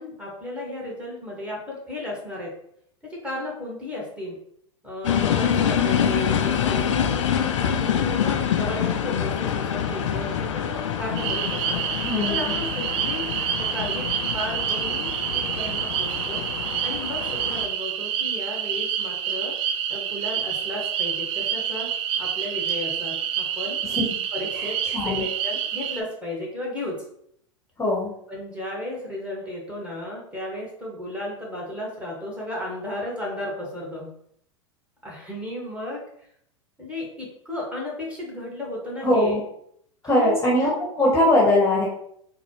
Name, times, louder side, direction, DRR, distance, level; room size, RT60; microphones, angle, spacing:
voice 1, 0.0-2.5 3.0-4.4 4.8-7.2 7.6-11.8 12.3-13.3 13.6-14.1 14.3-16.4 16.8-19.5 19.9-21.9 22.2-23.8 24.3-27.0 28.3-34.1 35.0-36.0 36.8-39.4 40.2-40.4, left 1 dB, 5° right, -4 dB, 1.3 m, -34 dB
sound 1, 5.0-17.7, left 8 dB, 75° left, 0.4 m, -26 dB
sound 2, 11.2-26.0, right 9 dB, 35° right, 0.4 m, -28 dB
voice 2, 12.0-12.5 23.8-24.1 24.5-25.2 27.8-28.1 39.0-39.4 40.0-41.9, left 1 dB, 15° left, -5 dB, 1.0 m, -21 dB
4.0 x 2.2 x 3.0 m, 0.70 s
hypercardioid pair, 100°, 16 cm